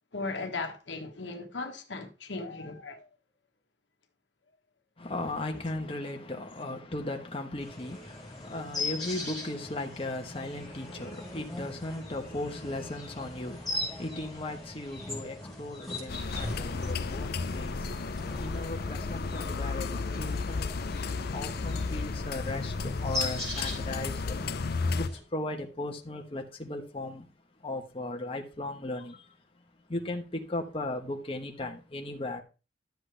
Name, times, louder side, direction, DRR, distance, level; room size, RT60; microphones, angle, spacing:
voice 1, 0.1-3.1, left 3 dB, 80° left, 1.5 m, -37 dB
voice 2, 5.0-20.9 21.3-24.4 24.9-27.3 27.6-29.3 29.9-32.4, left 2 dB, 30° left, 1.2 m, -37 dB
sound 1, 7.6-25.2, left 2 dB, ahead, 4.8 m, -40 dB
sound 2, 16.1-25.1, left 4 dB, 60° left, 0.6 m, -33 dB
11.5 x 7.7 x 3.4 m
head